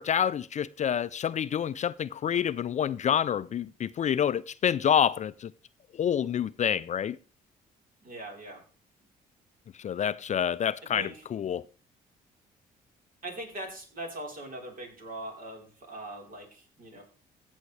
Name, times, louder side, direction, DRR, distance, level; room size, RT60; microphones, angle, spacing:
voice 1, 0.0-5.5 6.0-7.2 9.8-11.6, left 9 dB, 40° left, 0.4 m, -28 dB
voice 2, 8.0-8.6 10.9-11.2 13.2-17.0, right 1 dB, 50° right, 4.1 m, -41 dB
15.5 x 7.3 x 3.3 m
supercardioid pair, 60°, 18 cm